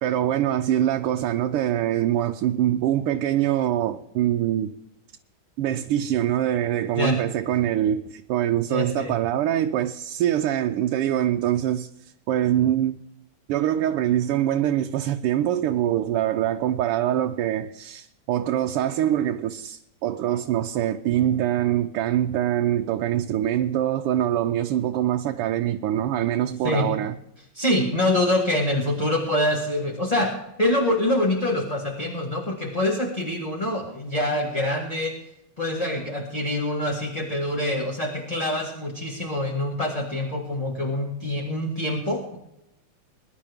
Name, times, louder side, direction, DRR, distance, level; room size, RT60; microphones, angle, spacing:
voice 1, 0.0-4.7 5.6-11.9 12.3-13.0 13.5-27.2, right 11 dB, 90° right, 1.6 m, -24 dB
voice 2, 8.7-9.1 26.6-26.9 27.5-30.3 30.6-35.1 35.6-42.4, left 1 dB, 20° left, 1.6 m, -25 dB
22.0 x 11.0 x 3.5 m
omnidirectional pair, 2.4 m